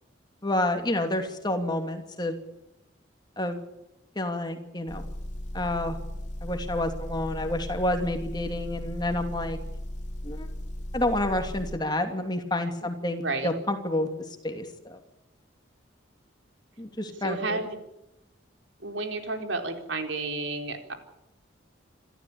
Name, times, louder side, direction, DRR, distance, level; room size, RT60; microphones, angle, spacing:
voice 1, 0.4-2.3 3.4-3.6 4.2-5.0 5.5-6.0 6.4-9.6 10.2-10.5 10.9-14.1 14.4-15.0 16.8-17.6, left 1 dB, 20° left, 5 dB, 2.8 m, -29 dB
Motor vehicle (road) / Engine, 4.9-11.8, left 1 dB, 40° left, 3.7 m, -36 dB
voice 2, 17.2-17.8 18.8-20.9, right 3 dB, 80° right, 5 dB, 4.3 m, -31 dB
27.5 x 14.0 x 8.8 m, 0.89 s
head